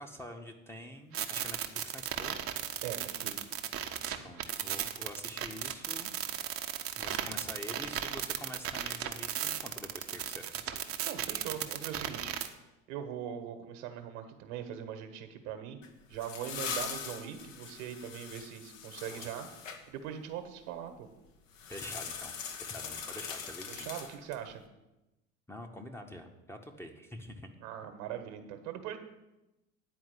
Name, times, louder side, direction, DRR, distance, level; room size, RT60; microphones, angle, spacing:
voice 1, 0.0-2.4 4.2-6.1 7.0-10.8 19.1-19.3 21.7-23.9 25.5-27.5, equal, 5° left, 3 dB, 0.9 m, -46 dB
sound 1, 1.1-12.5, right 10 dB, 35° right, 0.9 m, -35 dB
voice 2, 2.8-3.5 11.0-12.3 12.9-15.8 16.1-21.1 23.7-24.6 27.6-29.0, right 9 dB, 60° right, 8 dB, 1.4 m, -41 dB
sound 2, 15.8-19.8 21.5-24.5, left 6 dB, 70° left, 1.2 m, -41 dB
9.6 x 4.7 x 7.7 m, 0.97 s
figure-of-eight pair, 70°, 40 cm